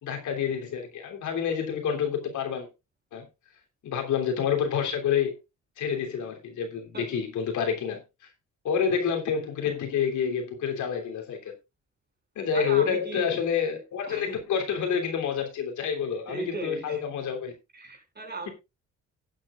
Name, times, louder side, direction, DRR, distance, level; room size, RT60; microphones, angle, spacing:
voice 1, 0.0-2.7 3.1-3.2 3.8-5.4 5.8-8.0 8.6-11.5 12.3-17.5, left 7 dB, 75° left, 3.2 m, -28 dB
voice 2, 12.5-13.3 14.1-14.4 16.3-17.0 17.7-18.5, right 3 dB, 35° right, 6.1 m, -36 dB
17.5 x 8.7 x 2.5 m
cardioid pair, 90°, 30 cm